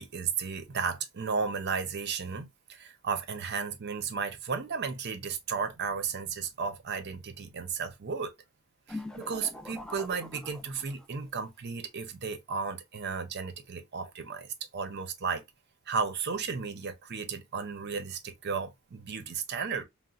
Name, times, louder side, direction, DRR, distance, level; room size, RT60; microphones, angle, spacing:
voice 1, 0.0-8.3 8.9-15.4 15.9-19.8, right 5 dB, 50° right, 0.6 m, -34 dB
sound 1, 8.9-11.3, left 1 dB, 5° left, 0.4 m, -43 dB
3.9 x 2.1 x 2.3 m
head